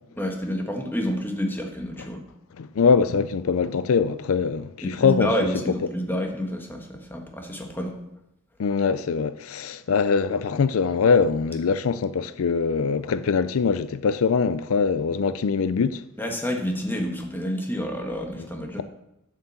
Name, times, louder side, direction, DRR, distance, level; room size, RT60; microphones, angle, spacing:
voice 1, 0.2-2.2 4.8-8.0 16.2-18.8, equal, 10° left, 1.5 m, -29 dB
voice 2, 2.6-5.3 8.6-16.0, left 5 dB, 75° left, 0.4 m, -22 dB
8.2 x 7.5 x 7.1 m
head